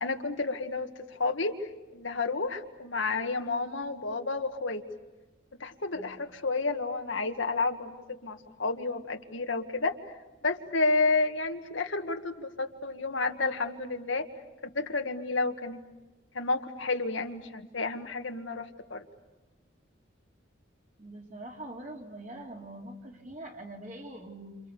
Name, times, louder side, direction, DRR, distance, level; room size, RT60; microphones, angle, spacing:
voice 1, 0.0-4.8 5.6-10.0 10.4-14.3 14.7-15.8 16.3-19.0, left 3 dB, 80° left, 5 dB, 1.8 m, -31 dB
voice 2, 5.9-6.3 21.0-24.6, right 1 dB, 40° right, 1 dB, 3.5 m, -43 dB
29.0 x 28.5 x 7.0 m, 1.1 s
head